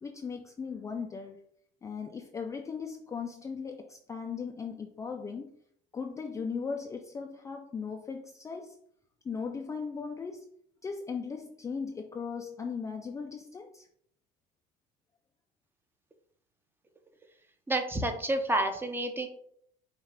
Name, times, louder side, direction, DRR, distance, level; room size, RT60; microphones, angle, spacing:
voice 1, 0.0-1.4 1.8-5.5 5.9-8.8 9.2-10.5 10.8-13.9, left 5 dB, 20° left, 4 dB, 0.4 m, -38 dB
voice 2, 17.7-19.3, right 1 dB, 15° right, 6 dB, 0.7 m, -29 dB
5.3 x 2.4 x 3.5 m, 0.66 s
supercardioid pair, 110°, 17 cm